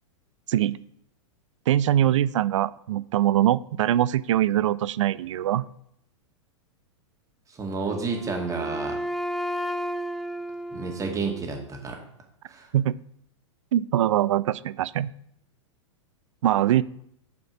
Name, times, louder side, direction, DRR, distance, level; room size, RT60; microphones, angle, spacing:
voice 1, 1.7-5.7 12.7-13.0 13.7-15.1 16.4-16.8, right 12 dB, 70° right, 19 dB, 0.5 m, -22 dB
voice 2, 7.5-9.0 10.7-12.0 12.5-12.7, right 4 dB, 20° right, 2 dB, 2.1 m, -31 dB
Wind instrument woodwind instrument, 7.8-11.8, equal, ahead, 0.3 m, -33 dB
8.2 x 5.1 x 6.7 m, 0.71 s
hypercardioid pair, 110°, 16 cm